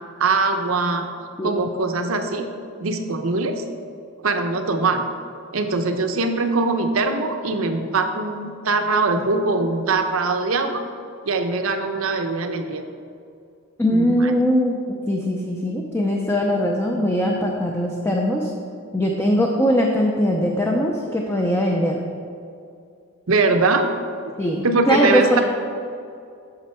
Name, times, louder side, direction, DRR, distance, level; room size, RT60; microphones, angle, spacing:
voice 1, 0.2-1.1 1.4-2.5 2.8-3.6 4.2-5.0 5.5-10.8 11.2-12.8 13.9-14.3 23.3-23.9 24.2-24.3 24.6-25.4, right 3 dB, 75° right, 6 dB, 0.8 m, -22 dB
voice 2, 13.8-14.8 15.1-18.5 18.9-22.0 24.4-25.4, equal, 10° left, 0 dB, 0.5 m, -21 dB
8.7 x 6.0 x 4.4 m, 2.4 s
head